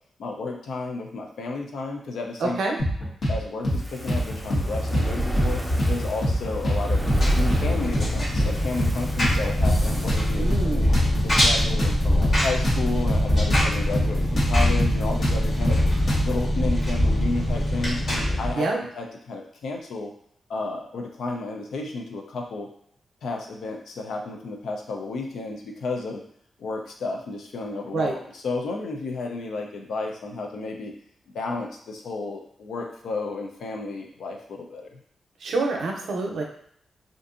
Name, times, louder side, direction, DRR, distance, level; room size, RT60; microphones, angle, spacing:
voice 1, 0.2-2.6 3.3-5.6 5.9-7.0 7.4-10.9 11.2-18.7 18.9-20.1 20.5-22.7 23.2-26.2 26.6-30.9 31.3-35.0, left 3 dB, 85° left, 2 dB, 0.5 m, -32 dB
voice 2, 2.4-2.8 10.4-10.9 18.5-18.8 27.9-28.1 35.4-36.4, right 3 dB, 80° right, 1 dB, 0.5 m, -26 dB
sound 1, 2.8-3.4 3.6-3.8 4.1-5.1 5.4-5.5 5.8-6.8 7.1-7.2 7.5-8.5 8.8-8.9 9.2-10.7 10.9-13.7 13.9-14.1 14.4-16.4, equal, 60° left, 1.0 m, -25 dB
Fire, 3.7-11.0 11.3-11.4, equal, ahead, 0.5 m, -29 dB
Engine, 6.9-18.5, left 1 dB, 45° left, 1.4 m, -23 dB
2.6 x 2.5 x 2.4 m, 0.67 s
cardioid pair, 70°, 0 cm